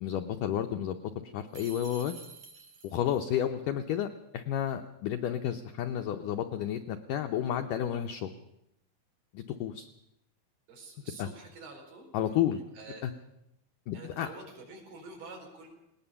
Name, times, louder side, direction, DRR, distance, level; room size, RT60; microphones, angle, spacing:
voice 1, 0.0-2.1 2.8-4.1 4.3-8.3 9.3-9.9 11.2-11.3 12.1-12.6 13.0-13.1 13.9-14.3, left 10 dB, 80° left, 6 dB, 1.9 m, -31 dB
sound 1, 1.5-3.2, right 5 dB, 50° right, 3.7 m, -49 dB
voice 2, 10.7-12.1 12.7-13.0 13.9-15.7, right 3 dB, 65° right, 0 dB, 6.6 m, -47 dB
19.5 x 19.0 x 7.1 m, 0.86 s
omnidirectional pair, 4.8 m